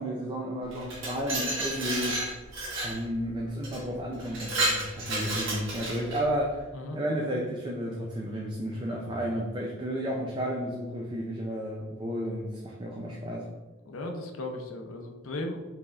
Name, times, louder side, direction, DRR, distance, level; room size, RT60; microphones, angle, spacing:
voice 1, 0.0-2.2 2.8-6.7 6.9-13.5, equal, 25° right, -1 dB, 0.4 m, -32 dB
Glass, 0.7-3.0 3.6-3.8 4.2-6.2, right 1 dB, 70° right, 1.3 m, -31 dB
voice 2, 13.9-15.7, left 2 dB, 85° left, 3 dB, 0.6 m, -36 dB
4.7 x 3.3 x 2.4 m, 1.2 s
head